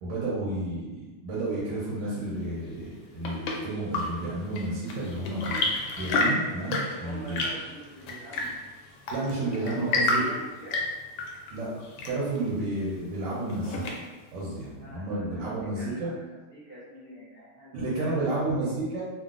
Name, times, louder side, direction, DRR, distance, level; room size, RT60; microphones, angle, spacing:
voice 1, 0.0-5.7 6.0-7.5 9.1-10.3 11.5-13.8 14.3-16.1 17.7-19.0, right 2 dB, 90° right, -7 dB, 1.6 m, -31 dB
Chirp tweet / Engine / Tap, 2.8-14.3, left 2 dB, 75° left, 1.2 m, -32 dB
voice 2, 6.8-8.5 9.4-10.8 14.7-18.7, right 1 dB, 70° right, -13 dB, 0.5 m, -45 dB
3.8 x 2.1 x 2.4 m, 1.2 s
omnidirectional pair, 2.4 m